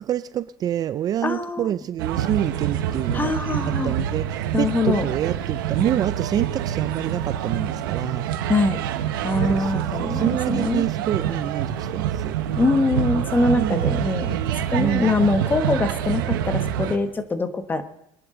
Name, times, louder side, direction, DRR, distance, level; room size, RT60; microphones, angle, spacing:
voice 1, 0.0-3.3 3.6-8.2 9.5-12.4 13.5-13.9 14.8-15.2, right 11 dB, 35° right, 14 dB, 0.4 m, -27 dB
voice 2, 1.2-1.7 3.1-3.9 4.5-5.0 8.5-8.8 9.2-10.8 12.6-17.8, left 3 dB, 15° left, 10 dB, 1.3 m, -23 dB
sound 1, 2.0-17.0, right 10 dB, 90° right, 1.3 m, -26 dB
23.0 x 10.5 x 3.9 m, 0.80 s
supercardioid pair, 120°, 11 cm